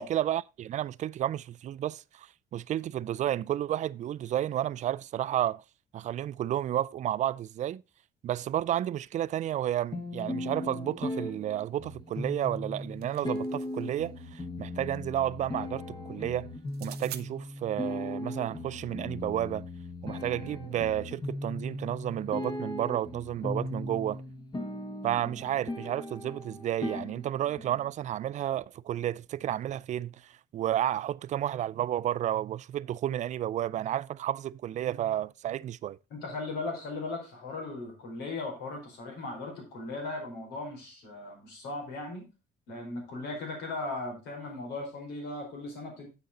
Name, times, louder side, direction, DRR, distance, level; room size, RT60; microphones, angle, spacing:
voice 1, 0.0-5.6 5.9-7.8 8.2-16.5 16.8-19.7 20.0-24.2 25.0-36.0, right 12 dB, 45° right, 0.4 m, -31 dB
sound 1, 9.9-27.9, left 1 dB, 30° left, 1.8 m, -38 dB
sound 2, 12.6-13.9 16.7-17.3, right 13 dB, 70° right, 0.8 m, -45 dB
voice 2, 36.1-42.2 42.7-46.1, left 2 dB, 80° left, 4.5 m, -37 dB
8.3 x 6.4 x 4.1 m
cardioid pair, 110°, 17 cm